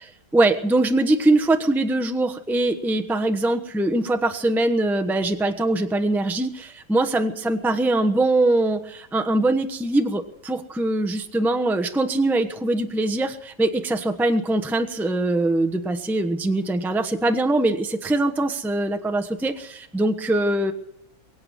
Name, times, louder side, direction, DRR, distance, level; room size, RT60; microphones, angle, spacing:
voice 1, 0.0-20.7, right 2 dB, ahead, 6 dB, 0.9 m, -22 dB
23.0 x 8.8 x 6.3 m, 0.75 s
omnidirectional pair, 1.5 m